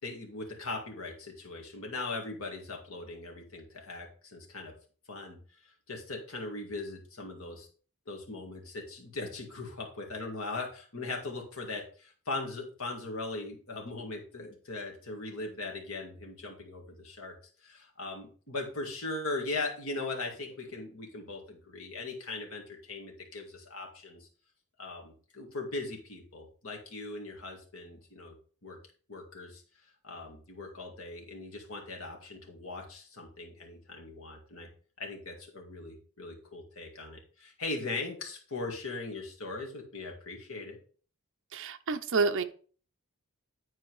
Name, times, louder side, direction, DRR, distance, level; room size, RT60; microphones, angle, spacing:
voice 1, 0.0-4.7 5.1-5.4 5.9-7.7 8.1-17.4 17.6-24.3 24.8-28.3 28.6-28.8 29.1-29.6 30.0-34.7 35.0-40.8, left 3 dB, 70° left, 2 dB, 2.0 m, -39 dB
voice 2, 41.5-42.4, right 4 dB, 60° right, 7 dB, 0.6 m, -28 dB
9.7 x 4.5 x 4.7 m, 0.42 s
head